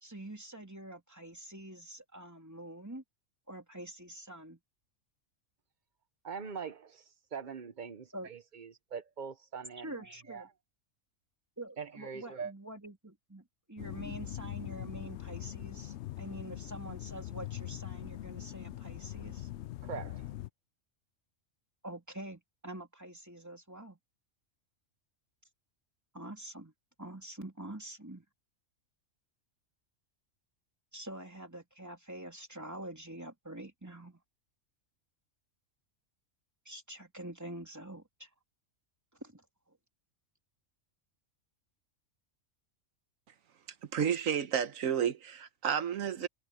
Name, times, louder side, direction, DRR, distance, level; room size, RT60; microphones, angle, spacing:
voice 1, 0.0-3.0 3.5-4.6 8.1-8.3 9.8-10.5 11.6-19.5 21.8-24.0 26.1-26.7 27.0-28.2 30.9-34.2 36.6-38.3 39.2-39.8, right 1 dB, 10° right, 3.2 m, -46 dB
voice 2, 6.2-10.5 11.8-12.5 19.8-20.3, right 6 dB, 40° right, 0.8 m, -43 dB
sound 1, 13.8-20.5, left 14 dB, 65° left, 0.8 m, -42 dB
voice 3, 43.9-46.3, right 8 dB, 85° right, 1.4 m, -31 dB
omnidirectional pair, 1.4 m